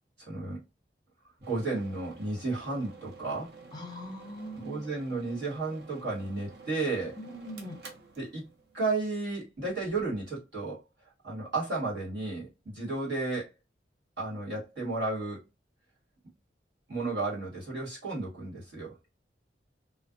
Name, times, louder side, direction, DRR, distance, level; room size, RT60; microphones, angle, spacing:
voice 1, 0.2-0.6 1.5-3.5 4.5-7.2 8.2-8.5 8.7-10.8 11.2-13.5 14.2-15.4 16.9-19.0, right 3 dB, 80° right, 1.5 m, -33 dB
sound 1, 1.4-9.1, right 4 dB, 60° right, 0.5 m, -51 dB
voice 2, 3.7-4.9 7.2-7.8, equal, 25° left, 0.4 m, -41 dB
2.5 x 2.2 x 2.4 m
head